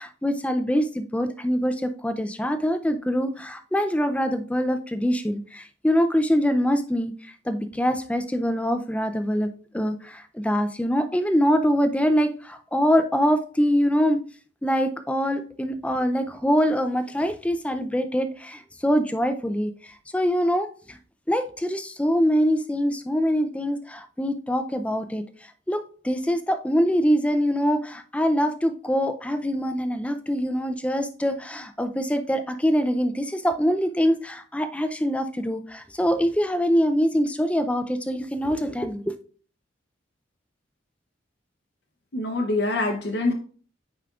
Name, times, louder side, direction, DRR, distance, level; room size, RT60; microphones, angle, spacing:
voice 1, 0.0-14.2 14.6-21.0 21.3-25.2 25.7-39.1, equal, 5° left, 9 dB, 0.4 m, -24 dB
voice 2, 42.1-43.3, left 2 dB, 60° left, 2 dB, 0.7 m, -25 dB
9.1 x 5.0 x 2.4 m, 0.43 s
head